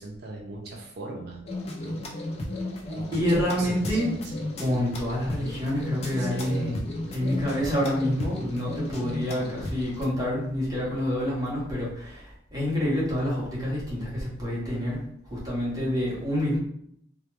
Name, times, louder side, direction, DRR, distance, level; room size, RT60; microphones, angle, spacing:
voice 1, 0.0-1.5 1.8-2.1 2.9-4.5 6.2-6.8, right 2 dB, 55° right, -1 dB, 0.4 m, -40 dB
sound 1, 1.5-10.0, left 1 dB, 35° left, 0.4 m, -34 dB
voice 2, 3.1-4.1 4.6-16.6, equal, 20° right, -7 dB, 0.7 m, -28 dB
2.2 x 2.2 x 3.0 m, 0.69 s
head